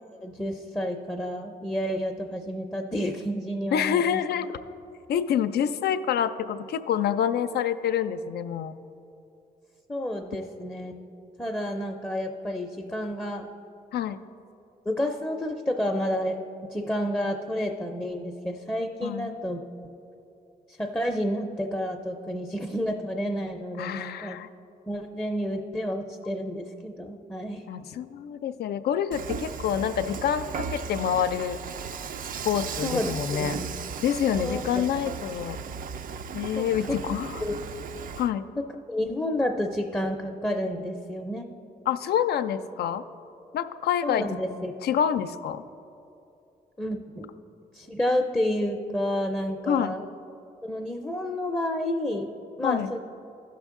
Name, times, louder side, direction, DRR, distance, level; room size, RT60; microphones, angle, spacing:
voice 1, 0.2-4.2 9.9-10.9 11.4-13.5 14.9-16.4 16.7-19.6 20.8-24.4 24.9-27.6 32.8-33.1 33.4-33.7 34.4-34.8 36.6-37.0 37.4-37.5 38.6-41.5 44.0-44.7 46.8-47.3 47.7-50.0 50.6-52.3 52.6-53.0, equal, 10° left, 2 dB, 0.5 m, -30 dB
voice 2, 3.7-4.6 5.1-8.7 13.9-14.3 19.0-19.4 23.8-24.5 27.7-31.6 32.4-33.6 34.0-35.6 36.3-37.4 38.2-38.4 41.9-43.0 43.5-44.3 44.8-45.6 49.7-50.0 52.6-52.9, left 9 dB, 85° left, 11 dB, 0.4 m, -27 dB
Dishes pots and pans / Frying (food), 29.1-38.3, right 6 dB, 60° right, 0.4 m, -36 dB
14.5 x 5.9 x 3.6 m, 2.7 s
cardioid pair, 105°, 16 cm